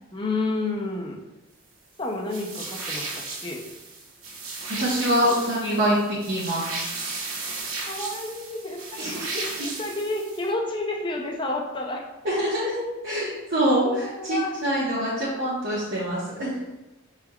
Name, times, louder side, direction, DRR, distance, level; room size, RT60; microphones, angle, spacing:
voice 1, 0.1-1.2 2.0-3.7 7.9-9.0 9.6-12.0 12.6-12.7 13.8-14.5, left 2 dB, 25° left, 0 dB, 0.5 m, -30 dB
sound 1, 2.3-10.5, right 3 dB, 80° right, 0.8 m, -35 dB
voice 2, 4.8-6.8 9.0-9.4 12.2-12.7 13.0-16.5, equal, 55° right, -9 dB, 1.0 m, -25 dB
5.5 x 3.5 x 2.3 m, 1.0 s
head